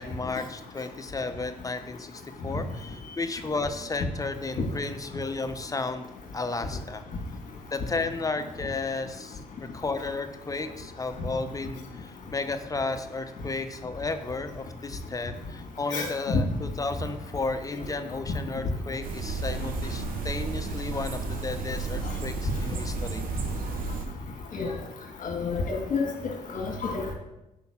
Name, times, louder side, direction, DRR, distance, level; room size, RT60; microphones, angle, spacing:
voice 1, 0.0-6.1 6.3-7.0 7.7-9.4 9.7-23.2, left 3 dB, 25° left, 8 dB, 0.7 m, -33 dB
voice 2, 15.9-16.4 24.5-24.7 25.2-26.0 26.5-27.1, left 4 dB, 60° left, 1 dB, 1.7 m, -29 dB
sound 1, 19.0-24.0, right 4 dB, 70° right, 0.9 m, -32 dB
5.2 x 3.9 x 5.8 m, 0.93 s
supercardioid pair, 65°, 15 cm